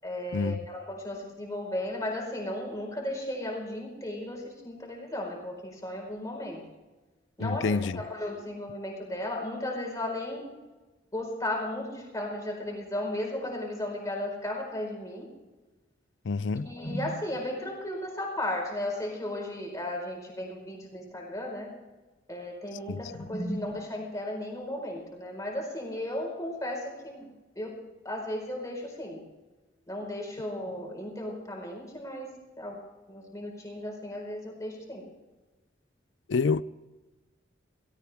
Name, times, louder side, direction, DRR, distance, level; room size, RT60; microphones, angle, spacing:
voice 1, 0.0-6.6 7.4-10.5 11.1-15.3 16.5-21.7 22.3-27.3 27.5-27.7 28.0-29.2 29.9-32.8 33.1-35.0, left 1 dB, 15° left, 4.7 m, -35 dB
voice 2, 7.4-8.0 16.2-16.7 22.9-23.0 36.3-36.6, left 4 dB, 65° left, 0.5 m, -27 dB
17.5 x 17.5 x 3.6 m
head